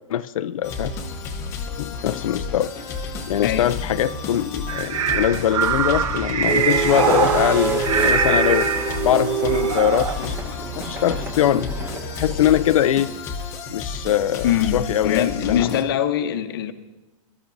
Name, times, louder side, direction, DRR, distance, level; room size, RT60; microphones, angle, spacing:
voice 1, 0.1-0.9 1.8-2.7 3.3-8.7 9.0-13.1 13.7-15.8, left 10 dB, 85° left, 12 dB, 0.5 m, -22 dB
sound 1, 0.6-15.8, left 4 dB, 15° left, 0.8 m, -31 dB
voice 2, 3.4-3.7 14.4-16.7, left 10 dB, 45° left, 10 dB, 0.8 m, -23 dB
Animals from Mars, 4.7-9.0 9.5-10.2, right 7 dB, 90° right, 1.0 m, -23 dB
sound 2, 6.5-12.8, right 4 dB, 15° right, 1.1 m, -27 dB
23.0 x 13.0 x 2.6 m, 1.1 s
supercardioid pair, 175°, 17 cm